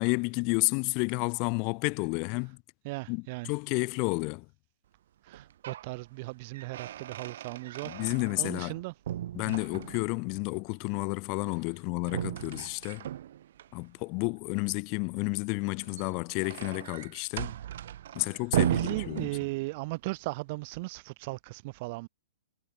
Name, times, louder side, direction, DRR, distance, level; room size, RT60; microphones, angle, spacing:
voice 1, 0.0-2.6 3.1-4.4 7.8-8.8 9.3-13.1 13.7-17.5 18.1-19.3, left 34 dB, 30° left, 4.8 m, -31 dB
voice 2, 2.8-3.5 5.2-8.1 8.4-8.9 9.5-9.6 18.2-18.4 18.7-22.1, right 24 dB, 35° right, 1.4 m, -37 dB
sound 1, 5.3-5.9 6.3-8.7 9.0-10.3 12.0-13.7 15.7-19.9, right 11 dB, 55° right, 4.7 m, -35 dB
hypercardioid pair, 165°, 0 cm